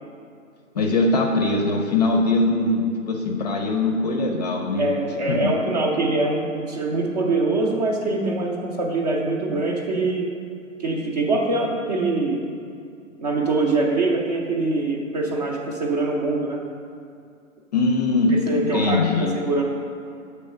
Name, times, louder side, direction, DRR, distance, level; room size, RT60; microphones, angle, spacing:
voice 1, 0.7-4.8 5.1-5.5 17.7-18.4 18.7-19.3, left 2 dB, 30° left, 1 dB, 0.6 m, -21 dB
voice 2, 4.8-10.3 10.8-12.4 13.2-16.6 18.3-19.6, right 2 dB, 30° right, 0 dB, 0.6 m, -23 dB
7.6 x 3.2 x 5.4 m, 2.4 s
figure-of-eight pair, 135°, 40 cm